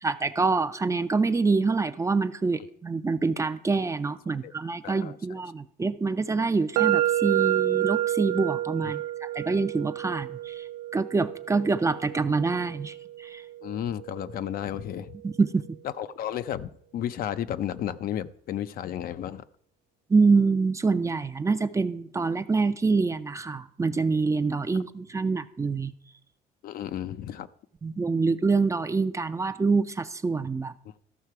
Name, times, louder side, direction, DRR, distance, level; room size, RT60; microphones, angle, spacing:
voice 1, 0.0-10.7 10.9-13.4 15.2-15.7 20.1-25.9 27.8-30.7, right 4 dB, 20° right, 11 dB, 0.4 m, -26 dB
voice 2, 4.8-5.2 8.8-9.0 13.6-15.2 16.0-19.4 26.6-27.5, left 10 dB, 60° left, 13 dB, 0.5 m, -33 dB
sound 1, 6.8-14.6, right 14 dB, 90° right, 0.4 m, -29 dB
13.5 x 5.7 x 4.6 m, 0.67 s
cardioid pair, 110°, 17 cm